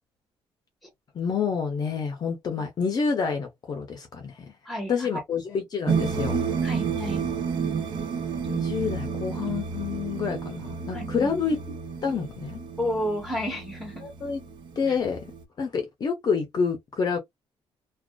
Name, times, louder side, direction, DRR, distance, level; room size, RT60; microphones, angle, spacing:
voice 1, 1.1-4.4 4.9-6.4 8.5-11.6 12.0-12.6 14.0-14.4 14.8-15.3 15.6-17.2, left 5 dB, 40° left, 0.6 m, -28 dB
voice 2, 4.7-5.2 6.6-7.2 10.9-11.3 12.8-14.1, equal, ahead, 1.2 m, -31 dB
sound 1, 5.9-15.4, right 6 dB, 50° right, 0.6 m, -31 dB
2.4 x 2.4 x 2.2 m
cardioid pair, 130°, 10 cm